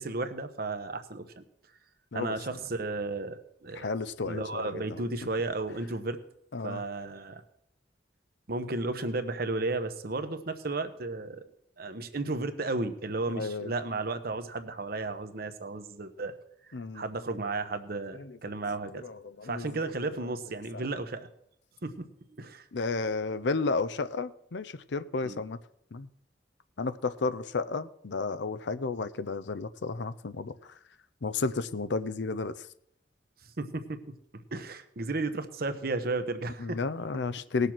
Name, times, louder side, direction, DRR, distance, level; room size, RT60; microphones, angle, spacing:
voice 1, 0.0-1.4 2.1-3.9 4.2-6.2 6.6-7.4 8.5-11.4 11.8-16.3 16.9-19.0 19.4-21.3 21.8-22.1 22.4-22.7 25.2-25.4 33.6-34.0 34.3-36.8, right 3 dB, 55° right, 9 dB, 1.0 m, -33 dB
voice 2, 3.7-5.0 6.5-6.8 13.3-13.7 16.7-17.0 18.1-18.4 19.0-19.7 20.7-20.8 22.7-25.6 25.9-26.1 26.8-30.5 31.2-32.5 36.6-37.7, left 4 dB, 80° left, 13 dB, 0.6 m, -32 dB
18.0 x 6.7 x 6.0 m, 0.76 s
head